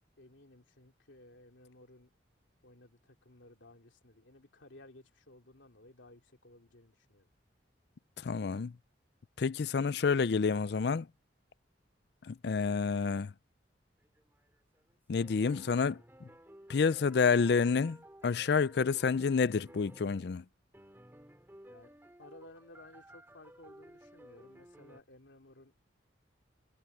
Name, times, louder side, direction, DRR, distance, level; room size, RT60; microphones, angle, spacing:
voice 1, 0.2-2.1 2.6-7.3 21.7-21.9 22.2-25.8, left 2 dB, 85° left, 2.9 m, -57 dB
voice 2, 8.2-8.7 9.4-11.1 12.3-13.3 15.1-16.0 16.7-18.0 18.2-20.4, left 5 dB, 60° left, 0.4 m, -29 dB
sound 1, 14.0-14.9 15.2-20.3 20.7-25.0, right 1 dB, 10° right, 2.6 m, -56 dB
head